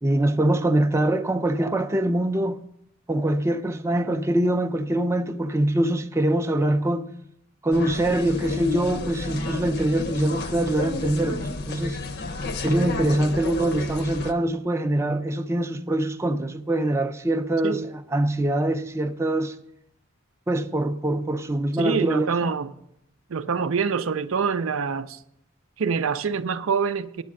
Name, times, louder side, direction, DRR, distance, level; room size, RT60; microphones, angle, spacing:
voice 1, 0.0-2.6 3.1-7.1 7.6-12.0 12.6-19.6 20.5-22.5, right 1 dB, 15° right, 0.4 m, -24 dB
sound 1, 7.7-14.3, left 3 dB, 55° left, 0.7 m, -31 dB
voice 2, 21.8-22.7 23.3-25.2 25.8-27.2, right 5 dB, 85° right, 0.5 m, -25 dB
9.4 x 7.7 x 6.3 m
head